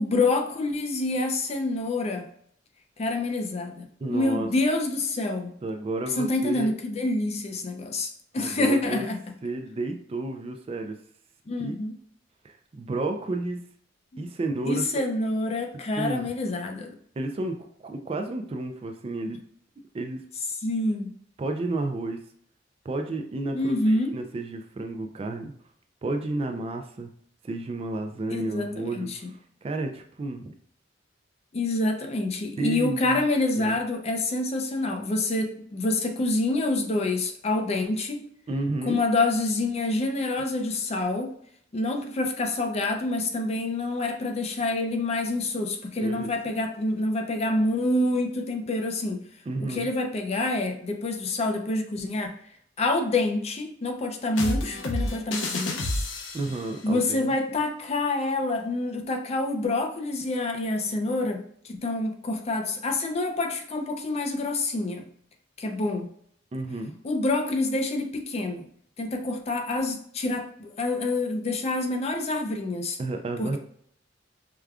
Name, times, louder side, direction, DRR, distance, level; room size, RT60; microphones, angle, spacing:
voice 1, 0.0-2.3 3.0-5.5 6.2-9.2 11.5-11.9 14.1-14.3 14.7-17.0 20.6-21.1 23.5-24.1 28.3-29.3 31.5-38.2 38.9-41.3 41.7-49.2 49.7-52.3 52.8-55.8 56.8-65.0 65.6-66.1 67.0-68.7 69.0-73.0 73.4-73.6, left 2 dB, 35° left, 4 dB, 0.4 m, -27 dB
voice 2, 4.0-4.5 5.6-6.7 8.3-9.0 9.4-10.9 11.6-11.7 12.4-13.6 14.2-14.9 16.0-16.2 17.2-19.4 19.9-20.2 21.4-22.2 22.8-25.5 26.0-27.1 27.4-30.5 32.6-33.2 33.6-33.8 38.5-39.0 46.0-46.3 49.5-49.9 56.3-57.2 66.5-66.9 73.0-73.6, right 2 dB, 30° right, 5 dB, 0.3 m, -31 dB
sound 1, 54.4-56.7, left 2 dB, 90° left, 0.6 m, -29 dB
4.8 x 2.3 x 2.3 m, 0.63 s
head